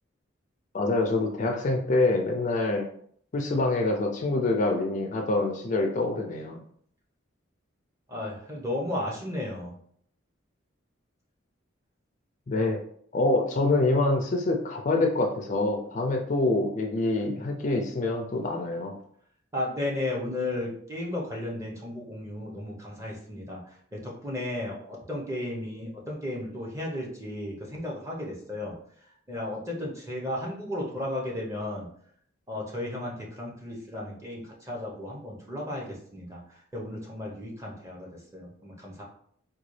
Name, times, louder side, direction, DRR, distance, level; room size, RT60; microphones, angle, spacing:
voice 1, 0.7-2.9 3.3-6.6 12.5-12.8 13.1-19.0, left 2 dB, 35° left, 2 dB, 0.4 m, -26 dB
voice 2, 8.1-9.7 19.5-28.8 29.3-31.9 32.5-36.4 36.7-39.0, left 1 dB, 15° right, -3 dB, 0.8 m, -34 dB
3.8 x 2.3 x 3.1 m, 0.63 s
head